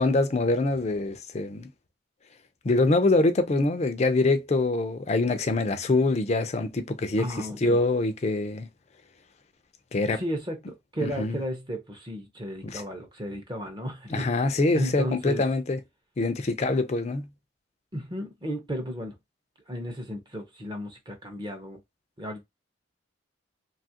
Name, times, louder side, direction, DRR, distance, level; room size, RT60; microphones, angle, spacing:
voice 1, 0.0-1.7 2.6-8.7 9.9-10.2 11.0-11.4 12.6-12.8 14.1-15.8 16.2-17.3, left 2 dB, 35° left, 0.4 m, -24 dB
voice 2, 7.2-7.8 10.1-14.4 14.7-15.4 17.9-19.2 19.7-21.8 22.2-22.4, equal, 20° right, 0.6 m, -34 dB
2.8 x 2.4 x 2.7 m
head